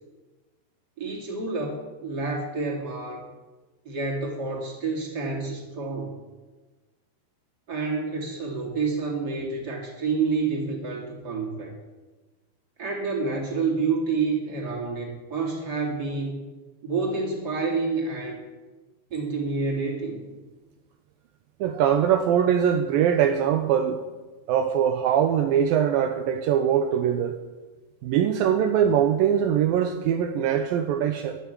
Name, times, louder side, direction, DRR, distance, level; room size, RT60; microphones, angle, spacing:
voice 1, 1.0-3.2 3.8-6.2 7.7-11.7 12.8-16.4 16.8-18.4 19.1-20.2, right 4 dB, 25° right, -2 dB, 3.5 m, -28 dB
voice 2, 21.6-24.0 24.5-27.3 28.0-31.4, right 9 dB, 80° right, 6 dB, 2.0 m, -22 dB
12.5 x 12.0 x 9.8 m, 1.2 s
omnidirectional pair, 5.2 m